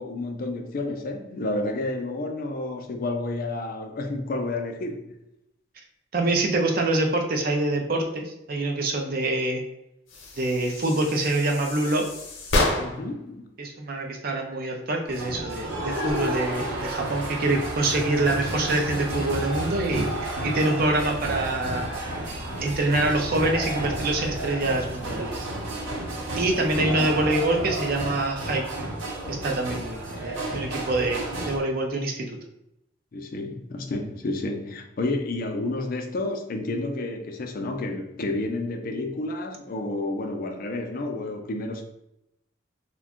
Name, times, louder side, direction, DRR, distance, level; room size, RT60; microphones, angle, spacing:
voice 1, 0.0-5.1 12.8-13.5 26.5-27.2 33.1-41.8, left 2 dB, 50° left, 0.4 m, -30 dB
voice 2, 6.1-9.6 10.4-12.0 13.6-21.9 22.6-25.5 26.4-28.9 29.3-32.4, right 2 dB, 50° right, 0.5 m, -25 dB
sound 1, 10.1-13.2, left 2 dB, 85° left, 0.7 m, -29 dB
sound 2, 15.1-31.6, right 1 dB, 80° right, 0.7 m, -32 dB
sound 3, 20.9-26.8, equal, ahead, 0.7 m, -40 dB
2.5 x 2.2 x 3.6 m
head